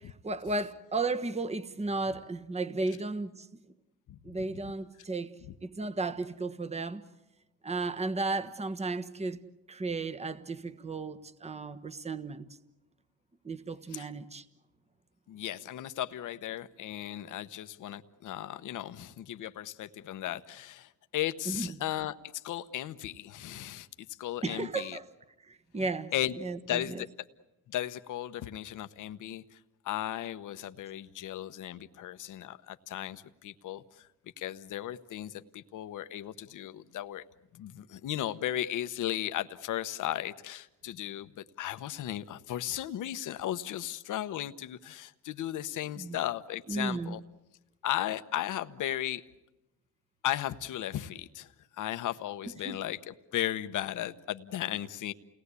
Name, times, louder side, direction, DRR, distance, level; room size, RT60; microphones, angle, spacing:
voice 1, 0.0-3.6 4.2-5.3 5.6-7.0 7.6-9.4 9.7-12.5 13.4-14.5 21.4-21.8 24.4-25.1 25.4-27.0 46.0-46.2 46.7-47.2 52.6-52.8, right 3 dB, 20° right, 1.3 m, -34 dB
voice 2, 15.3-23.9 24.2-25.0 26.1-26.3 26.7-27.1 27.7-29.6 29.8-34.1 34.4-37.2 37.5-47.2 47.8-49.2 50.2-51.5 51.8-55.1, left 12 dB, 70° left, 1.1 m, -36 dB
29.5 x 19.0 x 8.3 m
cardioid pair, 90°, 32 cm